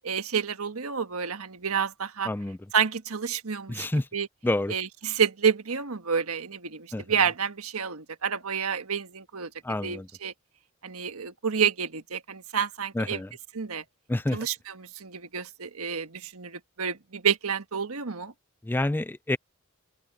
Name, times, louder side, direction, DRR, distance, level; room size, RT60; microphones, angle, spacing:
voice 1, 0.0-2.3 2.7-3.8 4.1-4.3 4.7-9.5 9.8-10.3 10.8-13.2 13.5-13.8 14.3-18.3, right 7 dB, 85° right, 1.4 m, -29 dB
voice 2, 2.2-2.6 3.7-4.1 4.4-4.8 6.9-7.0 9.6-10.1 12.9-13.3 14.1-14.4 18.6-19.4, left 1 dB, 10° left, 0.3 m, -28 dB
open air
head